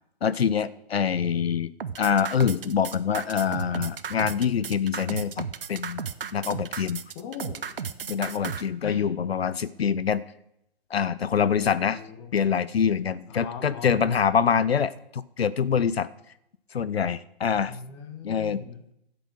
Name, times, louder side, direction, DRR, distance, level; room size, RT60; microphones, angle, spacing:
voice 1, 0.2-1.7 2.0-6.0 6.3-7.0 8.1-10.2 10.9-12.0 12.3-16.1 16.7-17.8 18.2-18.6, left 7 dB, 75° left, 17 dB, 0.6 m, -25 dB
sound 1, 1.8-8.6, right 7 dB, 60° right, 0.9 m, -34 dB
voice 2, 7.1-7.7 8.8-9.1 11.8-12.3 13.3-14.0 17.5-18.8, left 7 dB, 25° left, 6 dB, 1.5 m, -39 dB
12.0 x 7.9 x 6.3 m, 0.79 s
figure-of-eight pair, 135°, 31 cm